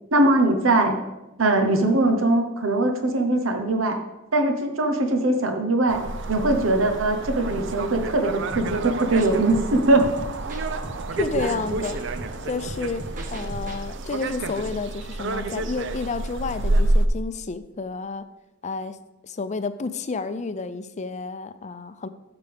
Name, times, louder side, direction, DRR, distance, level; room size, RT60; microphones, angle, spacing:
voice 1, 0.1-1.0 1.4-4.0 4.3-6.0 6.3-10.1 11.4-11.5, right 2 dB, 85° right, 5 dB, 1.0 m, -21 dB
sound 1, 5.9-17.1, right 2 dB, 65° right, 0.6 m, -29 dB
sound 2, 8.5-13.8, right 1 dB, 45° right, 1.2 m, -39 dB
voice 2, 11.1-12.0 12.4-13.0 13.3-18.2 18.6-19.0 19.2-22.1, left 4 dB, 35° left, 11 dB, 0.5 m, -30 dB
12.5 x 6.9 x 3.5 m, 1.0 s
head